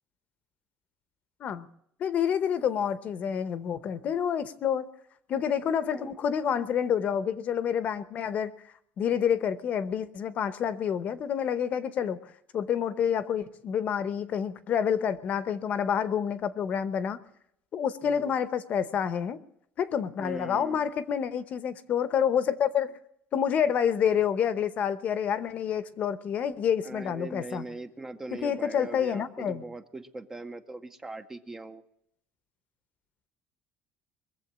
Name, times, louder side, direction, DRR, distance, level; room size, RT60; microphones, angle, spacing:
voice 1, 2.0-4.9 5.3-8.5 9.0-12.2 12.5-17.2 17.7-19.4 19.8-23.0 23.3-27.6 28.4-29.6, left 8 dB, 35° left, 14 dB, 0.8 m, -28 dB
voice 2, 18.0-18.3 20.2-20.8 26.8-31.8, right 2 dB, 10° right, 9 dB, 0.6 m, -41 dB
22.0 x 7.6 x 7.4 m, 0.72 s
cardioid pair, 175°, 4 cm